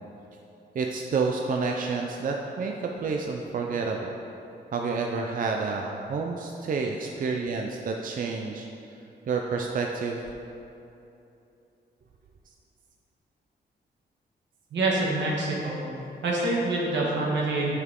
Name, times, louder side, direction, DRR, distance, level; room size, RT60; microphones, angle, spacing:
voice 1, 0.7-4.1 4.7-8.7 9.3-10.3, right 4 dB, 50° right, 1 dB, 0.5 m, -29 dB
voice 2, 14.7-15.8 16.2-17.8, right 2 dB, 80° right, -3 dB, 1.6 m, -26 dB
9.2 x 5.9 x 3.7 m, 2.8 s
cardioid pair, 115°, 18 cm